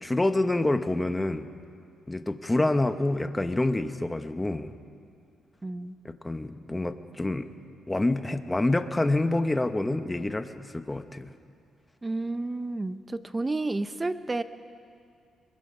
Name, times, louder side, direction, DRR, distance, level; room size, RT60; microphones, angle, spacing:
voice 1, 0.0-1.5 2.1-4.7 6.0-7.5 7.9-11.3, left 2 dB, 10° left, 9 dB, 0.9 m, -27 dB
voice 2, 5.6-6.0 12.0-14.4, right 2 dB, 20° right, 12 dB, 0.7 m, -31 dB
23.0 x 21.0 x 5.6 m, 2.3 s
cardioid pair, 115°, 0 cm